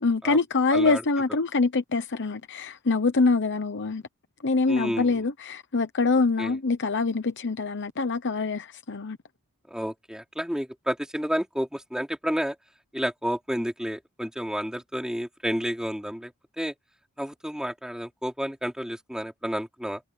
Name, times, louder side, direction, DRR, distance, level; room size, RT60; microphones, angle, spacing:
voice 1, 0.0-4.0 4.4-9.2, left 3 dB, 55° left, 1.0 m, -25 dB
voice 2, 0.7-1.0 4.7-5.2 6.4-6.6 9.7-12.5 12.9-16.3 16.6-16.7 17.2-20.0, equal, 5° right, 4.5 m, -30 dB
head